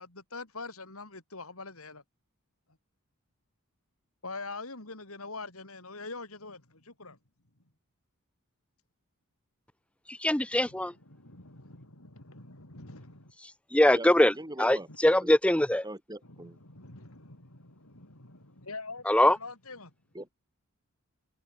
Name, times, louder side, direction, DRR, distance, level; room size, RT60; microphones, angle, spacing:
voice 1, 0.0-2.0 4.2-7.2 11.1-13.3 14.9-15.0 16.3-19.9, left 3 dB, 75° left, 5.6 m, -44 dB
voice 2, 10.1-10.9 13.4-15.8 19.1-19.4, left 1 dB, 5° left, 0.7 m, -23 dB
voice 3, 14.3-14.9 15.1-15.3 15.8-16.6 20.1-20.3, right 1 dB, 20° right, 7.6 m, -41 dB
head